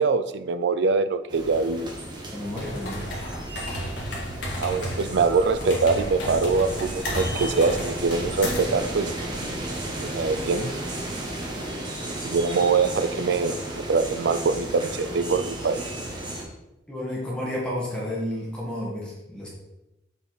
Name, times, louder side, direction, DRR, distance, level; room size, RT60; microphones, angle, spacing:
voice 1, 0.0-1.9 4.6-9.1 10.0-10.7 12.2-15.8, right 4 dB, 65° right, 12 dB, 0.4 m, -23 dB
sound 1, 1.3-16.4, right 1 dB, 25° right, 1.2 m, -34 dB
voice 2, 2.3-3.1 16.9-19.5, left 1 dB, 5° left, -5 dB, 1.6 m, -31 dB
sound 2, 2.5-8.8, equal, 75° left, 1.7 m, -33 dB
sound 3, 6.6-11.7, right 1 dB, 45° right, 1.7 m, -44 dB
7.1 x 4.1 x 4.0 m, 0.94 s
head